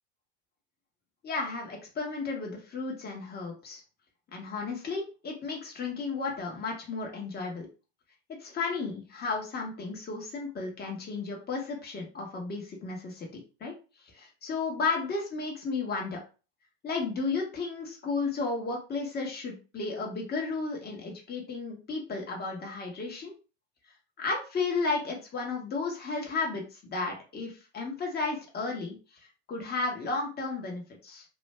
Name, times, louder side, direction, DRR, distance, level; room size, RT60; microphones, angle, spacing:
voice 1, 1.2-3.8 4.3-7.7 8.3-13.8 14.1-16.2 16.8-23.3 24.2-28.9 29.5-31.2, left 4 dB, 25° left, 0 dB, 1.3 m, -33 dB
3.0 x 2.6 x 3.2 m, 0.34 s
supercardioid pair, 130°, 36 cm